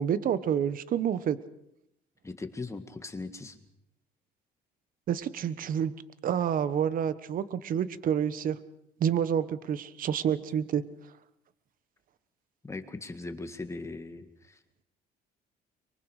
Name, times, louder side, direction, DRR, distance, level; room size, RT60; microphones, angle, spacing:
voice 1, 0.0-1.4 5.1-5.9 6.2-8.6 9.0-10.8, right 8 dB, 55° right, 15 dB, 1.2 m, -28 dB
voice 2, 2.2-3.6 12.6-14.6, left 3 dB, 15° left, 7 dB, 2.0 m, -39 dB
23.5 x 23.5 x 5.0 m, 0.82 s
cardioid pair, 110°, 17 cm